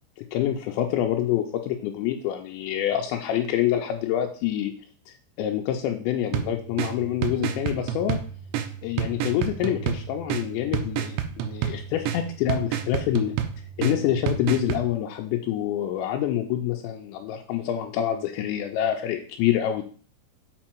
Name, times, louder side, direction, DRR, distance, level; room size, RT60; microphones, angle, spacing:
voice 1, 0.2-4.7 5.1-8.2 8.8-13.3 13.8-19.8, left 11 dB, 85° left, 2 dB, 2.9 m, -26 dB
sound 1, 6.3-14.9, right 10 dB, 85° right, 3.0 m, -30 dB
7.4 x 4.7 x 4.5 m, 0.43 s
omnidirectional pair, 5.1 m